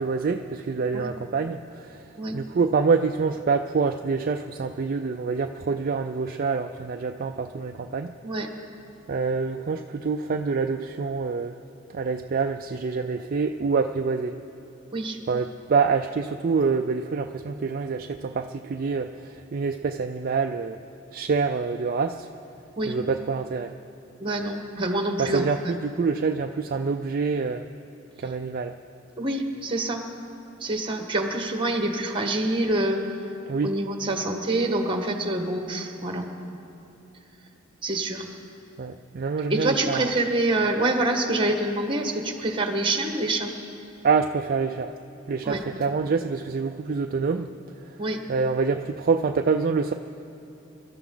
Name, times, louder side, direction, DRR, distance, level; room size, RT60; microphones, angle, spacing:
voice 1, 0.0-1.6 2.3-8.1 9.1-11.5 11.9-14.3 15.3-19.1 19.5-20.8 21.1-22.3 22.9-23.7 25.2-27.6 28.2-28.7 33.5-33.7 38.8-40.1 44.0-44.9 45.3-47.5 48.3-49.9, right 5 dB, 45° right, 5 dB, 0.4 m, -26 dB
voice 2, 24.2-25.7 29.2-30.0 30.6-33.0 33.6-36.3 37.8-38.3 39.5-43.5 45.4-45.6 48.0-48.2, right 2 dB, 25° right, 4 dB, 1.4 m, -26 dB
25.0 x 13.0 x 3.9 m, 2.9 s
head